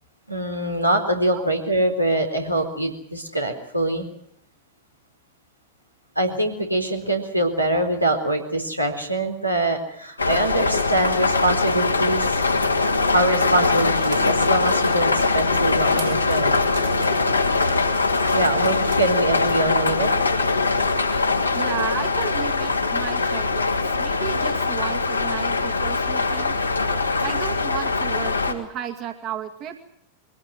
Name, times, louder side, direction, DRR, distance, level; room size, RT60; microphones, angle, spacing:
voice 1, 0.3-4.1 6.2-12.4 13.1-16.6 18.3-20.1, right 1 dB, 90° right, 2 dB, 3.9 m, -23 dB
sound 1, 10.2-28.5, left 3 dB, 80° left, 2.7 m, -22 dB
sound 2, 14.0-15.4 15.9-19.1, right 8 dB, 60° right, 4.8 m, -41 dB
voice 2, 21.5-23.7 24.0-26.6 27.2-29.8, right 10 dB, 35° right, 5 dB, 2.3 m, -33 dB
23.5 x 17.0 x 9.4 m, 0.71 s
figure-of-eight pair, 90°, 0 cm